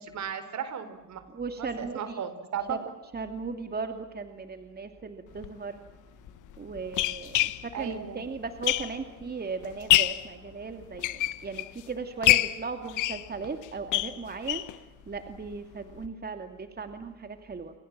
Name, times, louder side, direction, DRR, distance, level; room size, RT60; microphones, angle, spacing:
voice 1, 0.0-1.2 1.6-2.8 7.7-8.2, right 7 dB, 65° right, 11 dB, 4.3 m, -35 dB
voice 2, 1.3-2.0 2.7-2.8 3.1-5.8 6.6-7.4 7.8-14.6 15.1-17.7, right 4 dB, 30° right, 7 dB, 2.5 m, -37 dB
sound 1, 5.3-5.5 6.3-9.2 9.6-10.3 10.8-11.8 12.2-14.8 15.1-15.2 15.5-15.6 16.0-16.1, left 15 dB, 85° left, 1.2 m, -26 dB
30.0 x 24.0 x 7.6 m, 1.0 s
cardioid pair, 90°, 30 cm